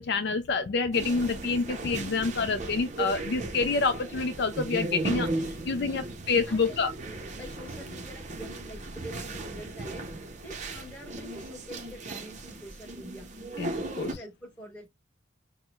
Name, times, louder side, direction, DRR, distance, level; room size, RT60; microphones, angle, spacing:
voice 1, 0.0-6.9 13.6-14.2, left 4 dB, 55° left, 0.4 m, -28 dB
sound 1, 0.9-14.1, right 2 dB, 35° right, 0.6 m, -36 dB
voice 2, 5.7-6.2 6.4-10.1 10.4-13.3 13.9-14.9, equal, 5° left, 1.2 m, -46 dB
6.0 x 2.1 x 2.3 m
head